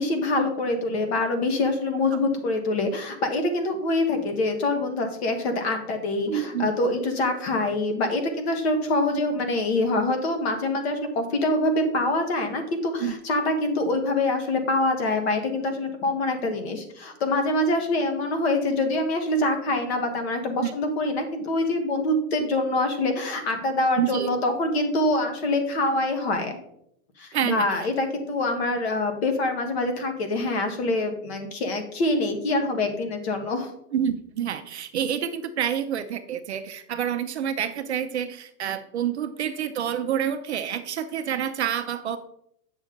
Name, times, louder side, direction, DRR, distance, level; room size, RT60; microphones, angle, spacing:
voice 1, 0.0-26.6 27.2-33.7, left 2 dB, 45° left, 7 dB, 1.5 m, -25 dB
voice 2, 6.3-6.7 13.0-13.1 20.6-20.7 24.0-24.3 27.3-27.7 33.9-42.2, right 9 dB, 45° right, 9 dB, 0.5 m, -28 dB
8.6 x 6.1 x 3.8 m, 0.74 s
supercardioid pair, 170°, 46 cm